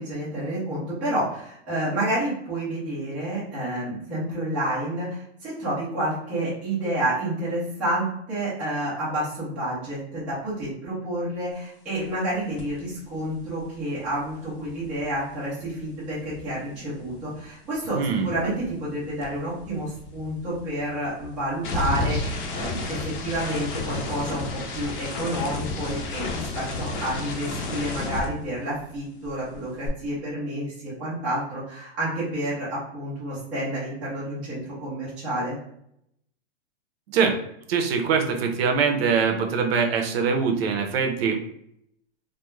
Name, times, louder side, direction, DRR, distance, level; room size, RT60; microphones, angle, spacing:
voice 1, 0.0-18.0 18.2-24.4 24.7-35.6, right 1 dB, 5° right, -12 dB, 0.3 m, -29 dB
sound 1, 12.6-12.8 13.1-17.4 17.7-29.0 29.2-29.9, left 3 dB, 50° left, 0.6 m, -33 dB
voice 2, 18.0-18.4 37.1-37.4 37.7-41.4, right 5 dB, 65° right, 4 dB, 0.6 m, -23 dB
2.3 x 2.1 x 2.9 m, 0.74 s
hypercardioid pair, 155°, 33 cm